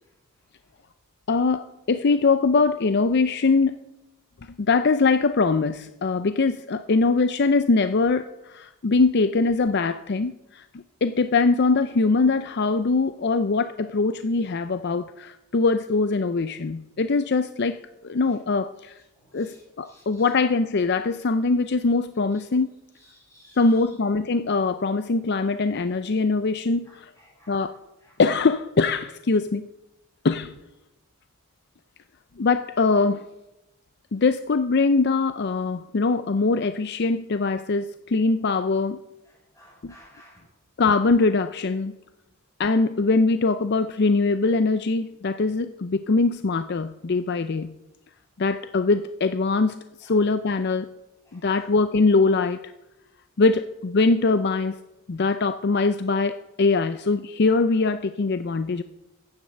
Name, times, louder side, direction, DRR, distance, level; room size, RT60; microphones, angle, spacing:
voice 1, 1.3-3.8 4.6-19.0 19.3-22.7 23.6-27.1 27.5-27.7 28.2-29.7 30.2-30.5 32.4-33.2 34.1-39.0 39.8-39.9 40.8-42.0 42.6-47.7 48.4-50.9 51.3-52.6 53.4-54.7 55.1-58.8, left 3 dB, 50° left, 11 dB, 0.5 m, -22 dB
voice 2, 19.4-20.0 23.2-23.8 26.9-27.6 28.0-28.1 39.5-40.4 50.1-50.2 51.3-51.7, left 1 dB, 15° left, -3 dB, 7.3 m, -53 dB
15.0 x 9.6 x 7.6 m, 0.98 s
head